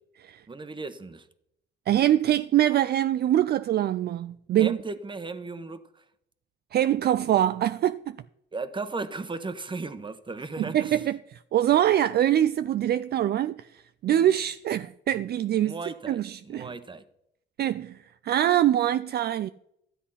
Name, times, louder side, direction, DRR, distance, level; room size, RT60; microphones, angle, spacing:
voice 1, 0.5-1.3 4.5-6.0 8.5-11.0 15.6-17.0, right 3 dB, 25° right, 1.1 m, -36 dB
voice 2, 1.9-4.8 6.7-8.2 10.6-15.8 16.1-16.7 17.6-19.5, right 11 dB, 55° right, 0.4 m, -24 dB
13.0 x 8.1 x 5.7 m
cardioid pair, 90°, 20 cm